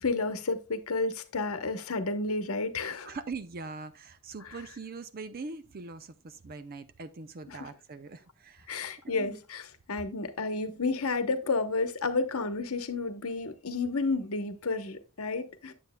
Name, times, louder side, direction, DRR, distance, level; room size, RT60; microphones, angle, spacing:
voice 1, 0.0-3.1 7.5-7.7 8.7-15.7, left 3 dB, 70° left, 0.9 m, -31 dB
voice 2, 3.0-9.3, right 4 dB, 40° right, 0.5 m, -42 dB
9.4 x 7.9 x 2.2 m
head